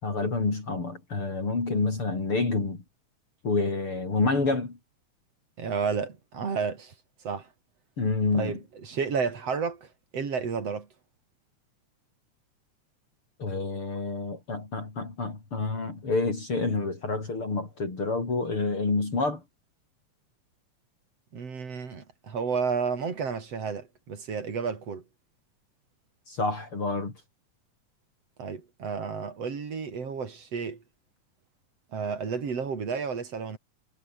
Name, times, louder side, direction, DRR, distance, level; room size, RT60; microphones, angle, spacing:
voice 1, 0.0-2.8 3.4-4.8 8.0-8.6 13.4-19.4 26.3-27.1, left 3 dB, 45° left, 5.9 m, -28 dB
voice 2, 5.6-6.9 7.2-7.5 8.3-10.9 21.3-25.0 28.4-30.8 31.9-33.6, right 5 dB, 55° right, 4.5 m, -31 dB
omnidirectional pair, 3.5 m